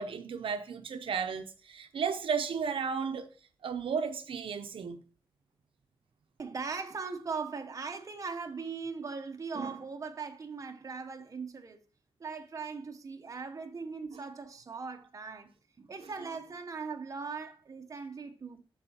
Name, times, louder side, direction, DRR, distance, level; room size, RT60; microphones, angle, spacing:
voice 1, 0.0-3.3 3.6-5.0 14.1-14.2 16.0-16.1, right 6 dB, 80° right, 0.6 m, -34 dB
voice 2, 6.4-11.8 12.2-15.5 15.8-18.6, right 5 dB, 40° right, 0.8 m, -39 dB
12.0 x 4.8 x 2.8 m
wide cardioid pair, 145°, 9 cm